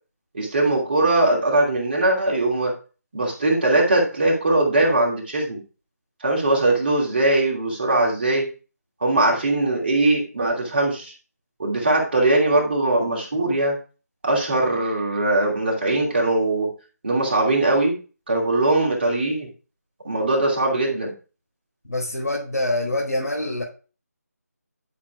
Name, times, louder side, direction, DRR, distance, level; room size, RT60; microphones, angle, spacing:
voice 1, 0.3-2.7 3.1-5.6 6.2-8.5 9.0-11.1 11.6-13.8 14.2-16.7 17.0-17.9 18.3-19.5 20.0-21.1, right 2 dB, 40° right, -2 dB, 2.7 m, -21 dB
voice 2, 21.8-23.6, left 1 dB, 80° left, -5 dB, 5.0 m, -25 dB
11.5 x 6.2 x 3.6 m, 0.34 s
figure-of-eight pair, 160°, 9 cm